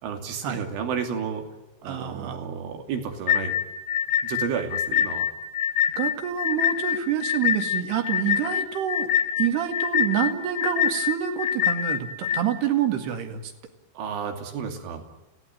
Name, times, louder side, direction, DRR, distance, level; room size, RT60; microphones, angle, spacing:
voice 1, 0.0-1.5 1.8-3.6 4.2-5.3 14.0-15.0, right 6 dB, 85° right, 4 dB, 5.1 m, -31 dB
voice 2, 1.8-2.5 6.0-9.1 9.4-13.5, right 10 dB, 65° right, 6 dB, 4.0 m, -27 dB
sound 1, 3.3-12.4, left 9 dB, 75° left, 3.0 m, -25 dB
30.0 x 17.5 x 9.4 m, 1.1 s
omnidirectional pair, 5.4 m